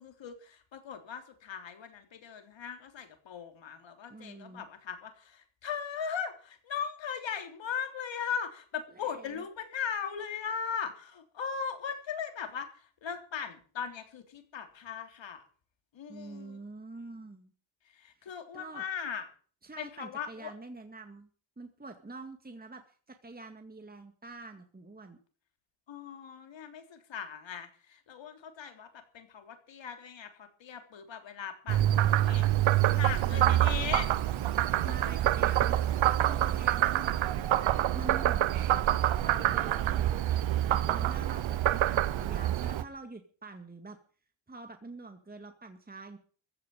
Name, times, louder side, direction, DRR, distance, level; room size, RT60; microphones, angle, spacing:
voice 1, 0.0-15.4 15.9-16.6 18.0-19.3 19.8-20.5 25.9-32.6 32.9-34.1 34.7-35.1, left 7 dB, 75° left, 6 dB, 3.5 m, -39 dB
voice 2, 4.1-4.7 8.9-9.4 16.1-17.5 18.2-18.9 19.6-21.3 21.6-25.2 33.2-33.7 34.1-34.2 34.6-37.7 37.9-38.8 39.2-44.0 44.5-46.2, right 3 dB, 20° right, 6 dB, 2.1 m, -46 dB
Frog, 31.7-42.8, right 13 dB, 85° right, 1.1 m, -26 dB
sound 1, 32.1-37.2, right 6 dB, 60° right, 4.0 m, -54 dB
15.5 x 7.5 x 9.0 m, 0.43 s
cardioid pair, 75°, 45 cm